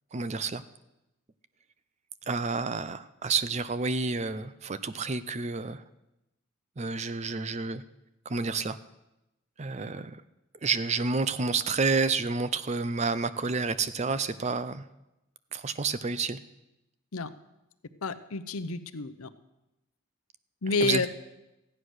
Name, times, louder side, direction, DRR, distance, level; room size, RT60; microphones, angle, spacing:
voice 1, 0.1-0.6 2.3-5.8 6.8-7.8 8.3-8.8 9.6-10.2 10.6-14.9 15.5-16.4 20.8-21.1, right 4 dB, 30° right, 14 dB, 0.4 m, -29 dB
voice 2, 18.0-19.3 20.6-21.1, left 4 dB, 80° left, 12 dB, 0.7 m, -29 dB
14.5 x 9.7 x 6.4 m, 0.94 s
head